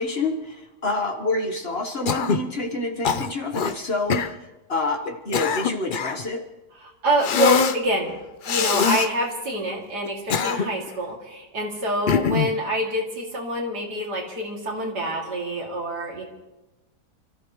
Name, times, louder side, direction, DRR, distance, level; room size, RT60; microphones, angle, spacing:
voice 1, 0.0-4.4 4.7-6.4, left 2 dB, 40° left, 4 dB, 1.4 m, -27 dB
Cough, 2.1-2.5 3.0-3.7 4.1-4.3 5.1-6.2 7.2-7.8 8.4-9.1 10.1-10.9 12.1-12.6, left 7 dB, 85° left, 0.4 m, -23 dB
voice 2, 7.0-8.2 8.5-16.2, right 1 dB, 75° right, -1 dB, 3.1 m, -26 dB
28.0 x 14.5 x 3.1 m, 1.1 s
omnidirectional pair, 1.7 m